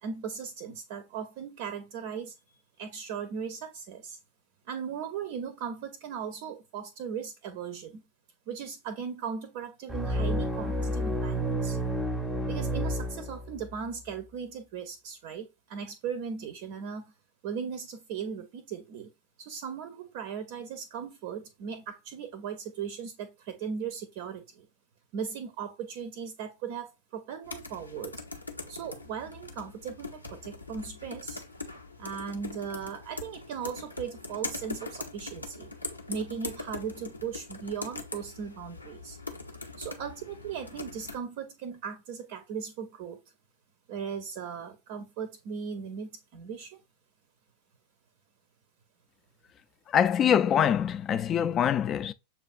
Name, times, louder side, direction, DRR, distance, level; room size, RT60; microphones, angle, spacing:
voice 1, 0.0-4.2 4.7-8.0 8.5-11.8 12.5-17.1 17.4-19.1 19.4-24.7 25.1-28.1 28.7-31.4 32.0-35.7 36.1-39.2 39.8-43.2 43.9-46.8, right 7 dB, 45° right, 0.5 m, -38 dB
sound 1, 9.9-13.7, right 1 dB, 10° right, 0.7 m, -30 dB
sound 2, 27.4-41.2, left 3 dB, 85° left, 0.6 m, -41 dB
voice 2, 49.9-52.1, left 9 dB, 30° left, 0.3 m, -24 dB
6.9 x 2.4 x 2.5 m
figure-of-eight pair, 90°, 0 cm